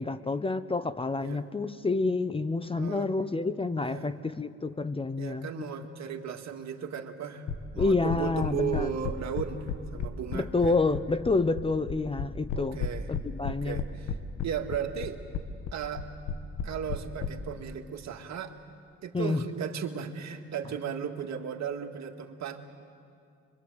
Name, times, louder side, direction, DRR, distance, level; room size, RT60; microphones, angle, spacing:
voice 1, 0.0-5.6 7.8-8.9 10.3-12.8 13.1-13.8 19.1-19.5, left 3 dB, 20° left, 13 dB, 0.7 m, -28 dB
voice 2, 2.7-3.3 3.8-4.1 5.2-7.5 7.7-10.7 12.5-13.1 13.4-14.1 14.4-15.2 15.7-16.1 16.6-18.5 19.0-22.7, right 7 dB, 65° right, 4 dB, 2.0 m, -36 dB
sound 1, 7.5-17.3, left 6 dB, 70° left, 1.6 m, -33 dB
25.0 x 23.0 x 8.0 m, 2.4 s
cardioid pair, 90°, 30 cm